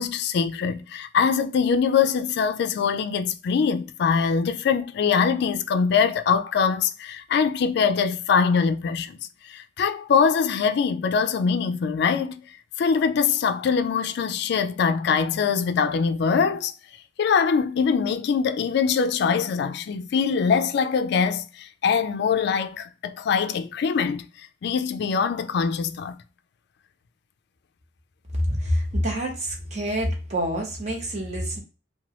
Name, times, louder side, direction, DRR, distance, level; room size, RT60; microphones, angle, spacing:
voice 1, 0.0-9.2 9.5-12.4 12.8-16.7 17.2-24.3 24.6-26.2, left 6 dB, 60° left, 0.3 m, -23 dB
voice 2, 28.4-31.6, equal, 40° right, 1.0 m, -27 dB
3.0 x 2.2 x 2.9 m
head